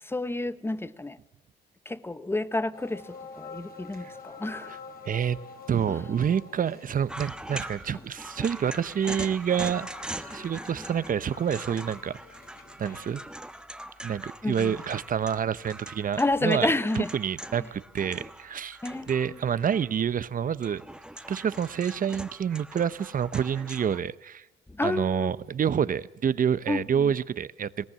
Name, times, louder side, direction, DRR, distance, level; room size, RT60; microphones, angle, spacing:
voice 1, 0.0-1.2 1.8-4.8 5.9-6.0 14.4-14.8 16.2-17.1 18.8-19.4 24.7-25.3 26.7-27.1, left 2 dB, 10° left, 1.0 m, -30 dB
sound 1, 2.7-13.6, left 4 dB, 50° left, 2.8 m, -48 dB
voice 2, 5.0-5.4 5.7-12.2 12.8-13.2 14.0-16.7 17.0-18.8 19.1-20.8 21.3-24.5 24.8-27.8, right 8 dB, 45° right, 0.8 m, -28 dB
sound 2, 7.1-20.1 20.5-24.0, right 1 dB, 5° right, 1.1 m, -42 dB
21.0 x 18.0 x 7.5 m
cardioid pair, 90°, 20 cm